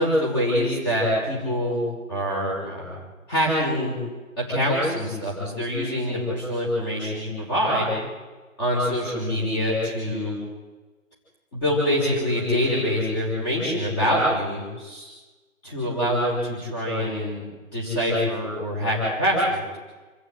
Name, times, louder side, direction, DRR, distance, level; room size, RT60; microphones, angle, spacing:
voice 1, 0.0-3.0 3.3-4.0 4.4-7.9 8.6-10.4 11.5-15.1 15.6-17.4 17.7-19.8, equal, 15° left, -5 dB, 5.4 m, -25 dB
26.5 x 14.0 x 9.3 m, 1.2 s
figure-of-eight pair, 170°, 42 cm